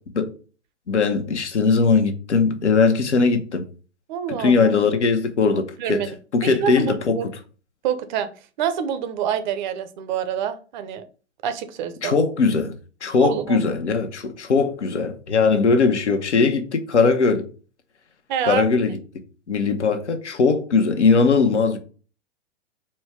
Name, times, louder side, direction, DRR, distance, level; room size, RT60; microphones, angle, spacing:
voice 1, 0.9-3.6 4.4-6.1 6.3-7.2 12.0-12.7 13.0-17.4 18.5-19.0 19.5-21.8, left 4 dB, 90° left, 0.9 m, -20 dB
voice 2, 4.1-4.7 5.8-6.2 6.4-7.2 7.8-8.3 8.6-11.0 11.4-12.2 13.2-13.7 18.3-18.7, right 9 dB, 45° right, 0.6 m, -26 dB
4.3 x 2.2 x 4.6 m
hypercardioid pair, 120°, 34 cm